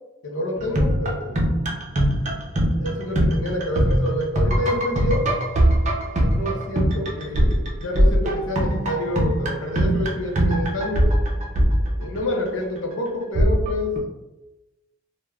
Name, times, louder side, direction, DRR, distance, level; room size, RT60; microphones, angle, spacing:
voice 1, 0.2-1.4 2.8-5.3 6.1-11.1 12.0-14.0, left 1 dB, 80° left, 1 dB, 0.6 m, -28 dB
sound 1, 0.6-12.5 13.3-14.0, equal, 35° right, 0.5 m, -21 dB
3.3 x 2.1 x 2.3 m, 1.0 s
head